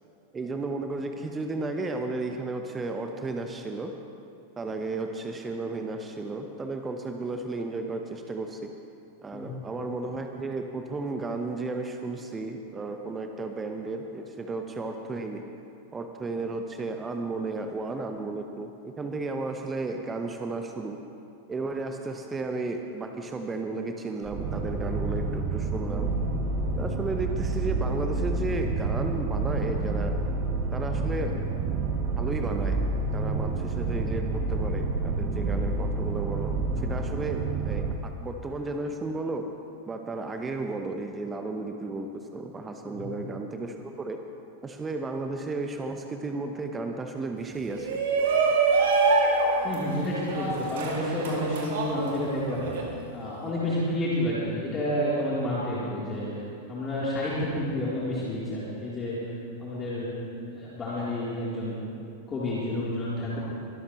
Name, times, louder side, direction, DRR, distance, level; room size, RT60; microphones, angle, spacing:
voice 1, 0.3-3.9 4.6-8.7 9.2-15.4 15.9-21.0 21.5-26.1 26.7-30.1 30.7-31.3 32.2-32.8 33.1-39.5 39.9-44.2 44.6-47.9, right 3 dB, 15° right, 4 dB, 1.0 m, -33 dB
voice 2, 9.3-9.7 42.8-43.2 49.6-52.7 53.1-56.3 56.7-59.2 59.6-60.2 60.5-61.8 62.3-63.4, left 1 dB, 20° left, -8 dB, 3.5 m, -30 dB
sound 1, 24.2-37.9, right 3 dB, 35° right, 1.3 m, -28 dB
Shout, 47.7-52.8, right 4 dB, 60° right, 2.5 m, -25 dB
23.5 x 13.0 x 3.1 m, 2.6 s
figure-of-eight pair, 90°, 0 cm